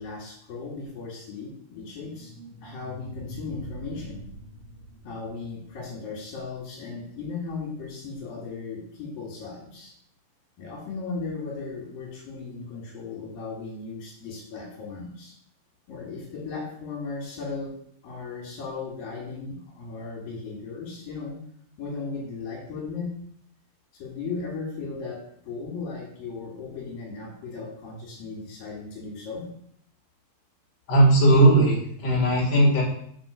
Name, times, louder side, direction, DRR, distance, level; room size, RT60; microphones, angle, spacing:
voice 1, 0.0-2.3 2.6-4.2 5.0-9.9 10.6-15.4 15.9-17.7 18.0-21.4 21.8-23.1 24.0-29.5, left 4 dB, 80° left, -3 dB, 4.1 m, -36 dB
sound 1, 1.8-6.9, right 2 dB, 85° right, 1.1 m, -44 dB
voice 2, 30.9-32.8, right 1 dB, 50° left, -4 dB, 3.5 m, -18 dB
6.3 x 6.2 x 6.5 m, 0.65 s
omnidirectional pair, 4.1 m